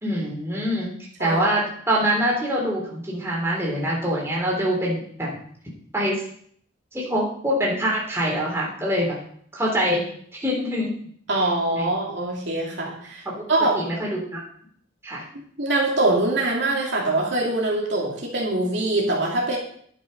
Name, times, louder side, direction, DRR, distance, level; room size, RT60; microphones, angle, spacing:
voice 1, 0.0-0.9 1.2-5.4 5.9-6.2 6.9-9.2 9.5-10.0 10.3-10.9 11.8-11.9 13.3-13.4 13.7-14.4 15.0-15.2, equal, 15° right, -4 dB, 3.6 m, -24 dB
voice 2, 11.3-13.2 13.5-13.8 15.3-19.6, right 2 dB, 60° right, -3 dB, 2.9 m, -23 dB
11.5 x 7.5 x 5.4 m, 0.62 s
head